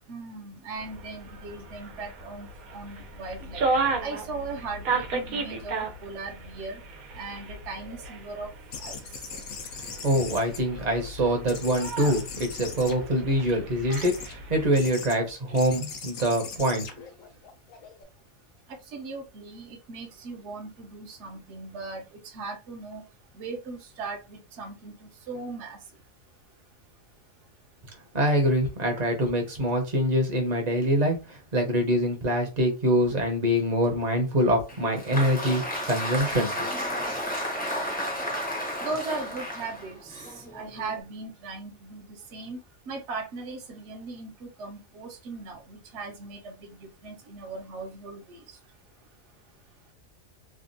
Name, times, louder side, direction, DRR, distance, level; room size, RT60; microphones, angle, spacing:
voice 1, 0.1-3.7 4.0-6.8 7.1-8.5 8.8-9.0 18.9-23.0 23.3-25.8 38.8-40.2 40.5-42.6 42.9-48.4, right 3 dB, 60° right, 3 dB, 1.0 m, -38 dB
sound 1, 0.7-14.6, right 3 dB, 90° right, 1.2 m, -34 dB
sound 2, 8.7-11.1 11.5-13.4 13.9-14.3 14.7-15.2 15.5-18.0, left 5 dB, 70° left, 1.1 m, -40 dB
voice 2, 10.0-16.8 28.1-36.7, equal, 35° right, 2 dB, 0.8 m, -25 dB
Applause, 34.7-41.0, equal, 10° left, 0.7 m, -32 dB
3.4 x 2.3 x 2.6 m, 0.27 s
omnidirectional pair, 1.4 m